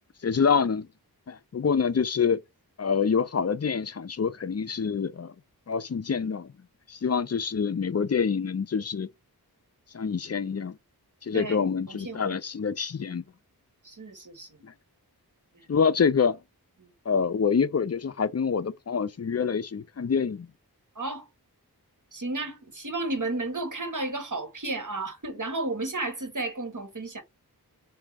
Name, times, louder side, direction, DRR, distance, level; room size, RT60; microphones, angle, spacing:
voice 1, 0.2-0.9 1.3-2.4 2.8-5.3 5.7-6.5 6.9-9.1 9.9-10.8 11.2-13.2 14.6-14.7 15.7-16.4 17.1-20.5, left 6 dB, 40° left, 0.5 m, -26 dB
voice 2, 11.3-12.4 13.8-14.6 15.5-15.7 16.8-16.9 21.0-21.3 22.1-27.2, right 2 dB, 50° right, 1.7 m, -33 dB
3.7 x 2.7 x 4.6 m
wide cardioid pair, 45°, 39 cm